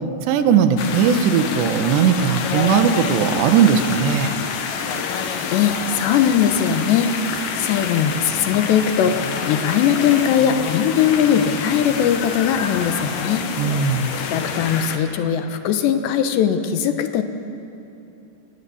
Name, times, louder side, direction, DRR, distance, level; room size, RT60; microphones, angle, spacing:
voice 1, 0.2-4.4 13.6-14.1, right 7 dB, 90° right, 9 dB, 3.5 m, -18 dB
sound 1, 0.8-15.0, left 6 dB, 60° left, 3.0 m, -27 dB
voice 2, 5.5-13.5 14.2-17.2, left 8 dB, 85° left, 9 dB, 3.5 m, -20 dB
27.5 x 20.0 x 8.6 m, 2.9 s
omnidirectional pair, 4.8 m